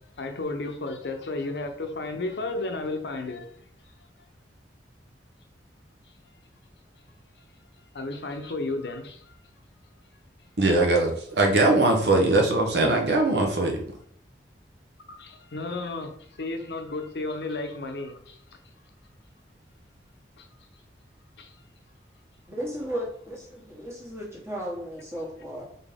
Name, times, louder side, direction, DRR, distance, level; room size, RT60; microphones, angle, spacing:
voice 1, 0.2-3.6 7.9-9.4 15.1-18.4 20.4-20.5 21.4-21.5, left 2 dB, 70° left, 0.7 m, -33 dB
voice 2, 10.6-13.8, right 2 dB, 70° right, 0.9 m, -21 dB
voice 3, 22.5-25.6, equal, 15° right, 1.3 m, -35 dB
4.1 x 3.6 x 3.6 m
head